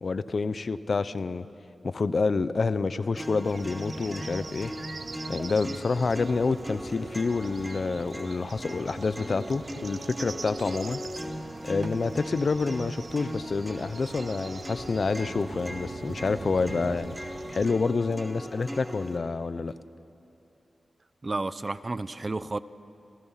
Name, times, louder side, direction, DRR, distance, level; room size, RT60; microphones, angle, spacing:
voice 1, 0.0-1.5 1.8-4.7 5.3-11.0 11.6-17.2 17.5-19.7, left 4 dB, 50° left, 0.7 m, -28 dB
sound 1, 3.2-19.2, equal, 5° right, 2.5 m, -39 dB
sound 2, 3.4-17.7, right 4 dB, 55° right, 1.0 m, -43 dB
voice 2, 21.2-22.6, right 2 dB, 30° right, 0.6 m, -31 dB
30.0 x 28.5 x 5.8 m
wide cardioid pair, 125°, 0 cm